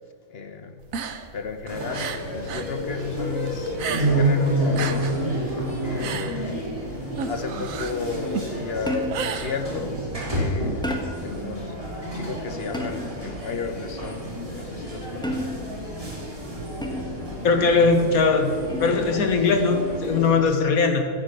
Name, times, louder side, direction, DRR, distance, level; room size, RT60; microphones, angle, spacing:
voice 1, 0.3-0.8 1.3-5.3 5.8-6.6 7.2-9.9 10.3-10.9 11.2-11.7 12.1-14.3 14.5-15.5 20.4-20.6, left 5 dB, 50° left, 8 dB, 1.1 m, -33 dB
sound 1, 0.8-2.7 3.0-4.3 4.6-10.1, right 6 dB, 70° right, 1.3 m, -33 dB
sound 2, 1.7-20.4, right 1 dB, 25° right, 2.8 m, -29 dB
sound 3, 8.9-9.4 10.8-11.3 12.7-13.2 15.2-15.8 16.8-17.3 18.7-19.1, left 1 dB, 5° left, 1.2 m, -31 dB
voice 2, 17.4-21.1, left 4 dB, 85° left, 5 dB, 1.7 m, -20 dB
14.5 x 8.3 x 6.6 m, 2.2 s
omnidirectional pair, 1.5 m